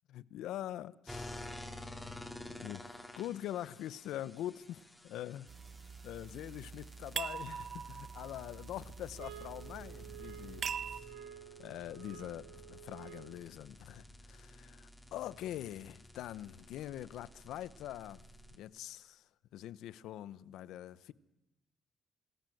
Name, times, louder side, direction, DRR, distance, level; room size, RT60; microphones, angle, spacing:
voice 1, 0.1-1.5 2.5-5.5 6.0-11.2 11.6-18.2 18.5-19.2 19.5-21.1, left 12 dB, 85° left, 0.8 m, -44 dB
sound 1, 1.1-18.6, left 1 dB, 5° left, 2.8 m, -52 dB
sound 2, 5.5-11.0, right 6 dB, 45° right, 1.1 m, -43 dB
sound 3, 9.2-13.5, right 11 dB, 75° right, 1.8 m, -52 dB
27.5 x 20.5 x 7.9 m
cardioid pair, 120°, 0 cm